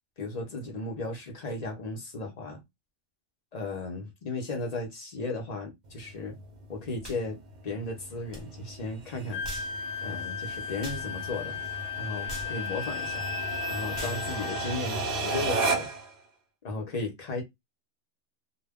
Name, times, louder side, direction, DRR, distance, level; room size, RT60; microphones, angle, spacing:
voice 1, 0.2-2.6 3.5-6.4 6.7-9.4 10.0-11.6 12.0-13.2 13.7-15.9 16.6-17.4, left 3 dB, 40° left, 0.7 m, -35 dB
sound 1, 5.9-16.1, right 3 dB, 50° right, 0.6 m, -35 dB
sound 2, 7.0-7.2 8.3-8.4 9.4-9.7 10.8-11.0 12.3-12.5 13.9-14.2, equal, 25° right, 0.9 m, -40 dB
Wind instrument woodwind instrument, 9.3-14.8, left 8 dB, 80° left, 0.9 m, -35 dB
2.2 x 2.1 x 3.4 m
omnidirectional pair, 1.3 m